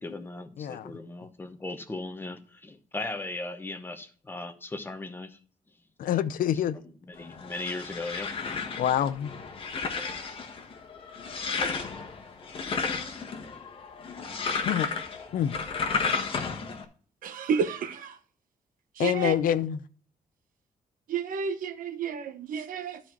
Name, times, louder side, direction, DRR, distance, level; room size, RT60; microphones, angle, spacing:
voice 1, 0.0-5.4 7.0-8.3, left 2 dB, 15° left, 0.9 m, -37 dB
voice 2, 0.6-0.9 6.0-6.8 8.8-9.3 14.6-14.9 15.3-15.6 19.0-19.8, left 10 dB, 75° left, 0.6 m, -26 dB
sound 1, 7.2-16.8, left 5 dB, 40° left, 1.3 m, -33 dB
voice 3, 17.2-18.2 19.0-19.3 21.1-23.0, right 6 dB, 75° right, 0.9 m, -31 dB
12.5 x 4.4 x 4.4 m
wide cardioid pair, 165°, 14 cm